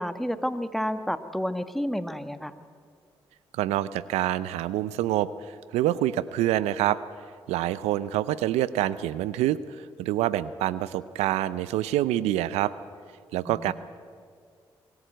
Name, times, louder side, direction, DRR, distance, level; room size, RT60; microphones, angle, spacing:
voice 1, 0.0-2.6 13.5-13.7, equal, ahead, 10 dB, 1.5 m, -30 dB
voice 2, 3.5-7.0 7.5-12.7 13.3-13.7, right 13 dB, 85° right, 17 dB, 0.6 m, -26 dB
24.5 x 14.5 x 9.2 m, 2.1 s
hypercardioid pair, 45°, 11 cm